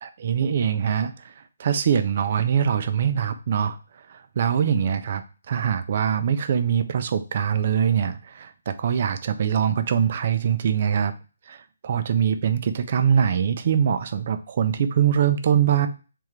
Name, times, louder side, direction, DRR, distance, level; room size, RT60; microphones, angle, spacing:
voice 1, 0.0-1.1 1.6-3.8 4.1-11.1 11.5-15.9, right 8 dB, 40° right, 10 dB, 0.4 m, -23 dB
3.6 x 3.4 x 3.1 m, 0.33 s
hypercardioid pair, 170°, 0 cm